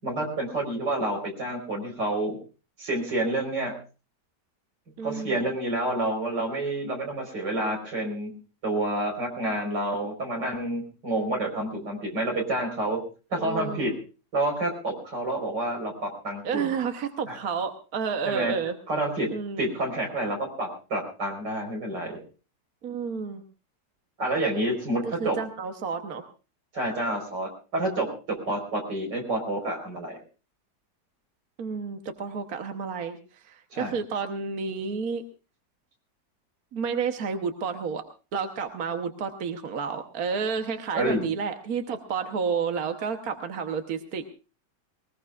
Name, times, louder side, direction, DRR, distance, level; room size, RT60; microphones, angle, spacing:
voice 1, 0.0-2.4 2.8-3.7 5.0-8.3 8.6-13.0 13.3-13.9 14.3-16.7 17.3-17.4 18.2-18.5 18.9-19.3 19.6-22.2 24.2-25.4 26.7-30.2 33.7-33.9 40.9-41.3, right 1 dB, 85° right, 2 dB, 5.1 m, -29 dB
voice 2, 5.0-5.5 11.1-11.9 13.4-13.9 16.4-18.8 19.3-19.7 22.8-23.4 25.0-26.2 31.6-35.2 36.7-38.0 38.3-44.3, right 5 dB, 60° right, 6 dB, 1.5 m, -31 dB
21.5 x 19.5 x 2.4 m, 0.33 s
omnidirectional pair, 1.8 m